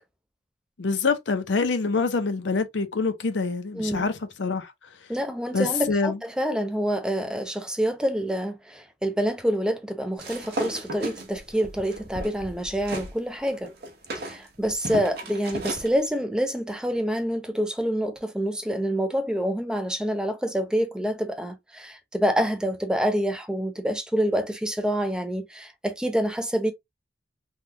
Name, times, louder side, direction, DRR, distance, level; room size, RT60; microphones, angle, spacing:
voice 1, 0.8-4.7 5.5-6.2, left 4 dB, 70° left, 0.6 m, -25 dB
voice 2, 3.7-4.0 5.1-13.7 14.1-26.7, equal, 5° right, 0.4 m, -27 dB
sound 1, 10.2-13.1 13.5-15.9, right 1 dB, 60° right, 1.0 m, -35 dB
3.6 x 2.3 x 2.6 m
head